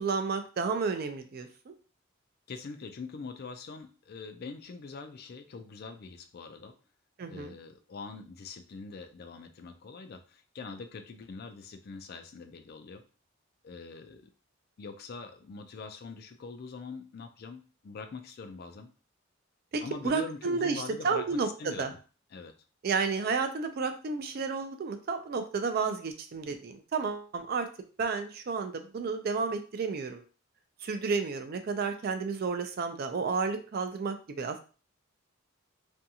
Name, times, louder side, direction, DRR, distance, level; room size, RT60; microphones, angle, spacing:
voice 1, 0.0-1.7 7.2-7.5 19.7-21.9 22.8-27.7 28.0-30.2 30.8-34.6, right 4 dB, 50° right, 7 dB, 0.4 m, -31 dB
voice 2, 2.5-6.7 7.3-13.0 13.6-14.3 14.8-18.9 19.8-22.0 22.3-22.5, left 4 dB, 50° left, 7 dB, 0.4 m, -43 dB
2.6 x 2.3 x 2.7 m, 0.36 s
head